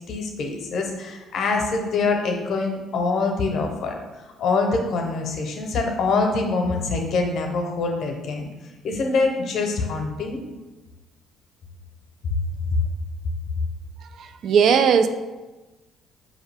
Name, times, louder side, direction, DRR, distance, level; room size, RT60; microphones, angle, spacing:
voice 1, 0.1-4.0 4.4-8.5 8.8-10.4 12.3-12.4, left 3 dB, 65° left, 2 dB, 0.7 m, -24 dB
voice 2, 14.0-15.1, right 7 dB, 65° right, 9 dB, 0.3 m, -19 dB
4.8 x 2.7 x 3.3 m, 1.1 s
cardioid pair, 100°, 0 cm